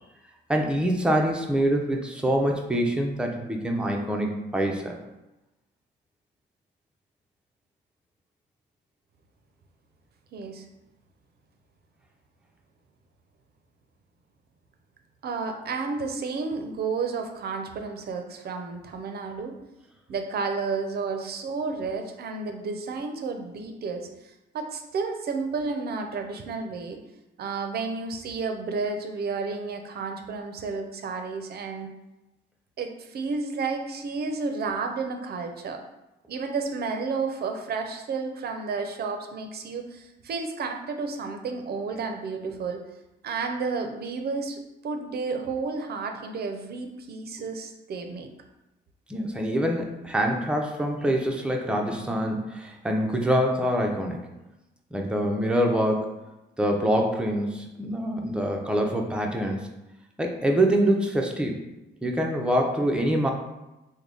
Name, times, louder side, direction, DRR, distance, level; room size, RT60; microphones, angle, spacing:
voice 1, 0.5-5.0 49.1-54.3 54.9-56.1 56.6-59.6 60.2-61.6 62.0-63.3, right 1 dB, 5° right, 1 dB, 0.5 m, -25 dB
voice 2, 10.3-10.7 15.2-19.6 20.1-24.1 24.5-27.0 27.4-31.9 32.8-35.8 36.3-42.8 43.2-48.3, right 4 dB, 55° right, 5 dB, 0.5 m, -31 dB
3.3 x 2.1 x 3.7 m, 0.98 s
cardioid pair, 90°, 20 cm